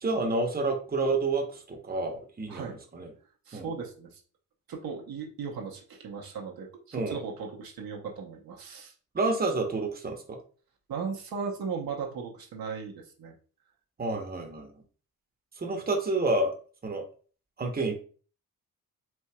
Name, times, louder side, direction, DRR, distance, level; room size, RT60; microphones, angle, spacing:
voice 1, 0.0-3.1 3.5-3.7 6.9-7.2 9.1-10.4 14.0-14.7 15.6-16.5 16.8-17.0 17.6-18.0, right 2 dB, 25° right, 3 dB, 0.9 m, -29 dB
voice 2, 3.5-4.2 4.7-8.9 10.9-13.3, right 5 dB, 70° right, 0 dB, 0.9 m, -37 dB
4.4 x 2.7 x 2.2 m, 0.41 s
cardioid pair, 60°, 37 cm